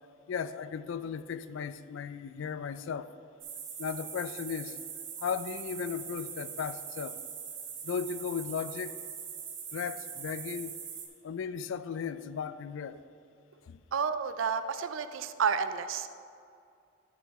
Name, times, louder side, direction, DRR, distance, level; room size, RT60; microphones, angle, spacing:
voice 1, 0.3-3.1 3.8-4.8 5.2-7.2 7.8-9.0 9.7-10.8 11.2-13.0 13.7-13.8, left 6 dB, 75° left, 0.3 m, -36 dB
sound 1, 3.4-11.1, right 7 dB, 65° right, 1.2 m, -42 dB
voice 2, 13.9-16.1, right 6 dB, 80° right, 0.4 m, -30 dB
11.5 x 4.6 x 4.2 m
head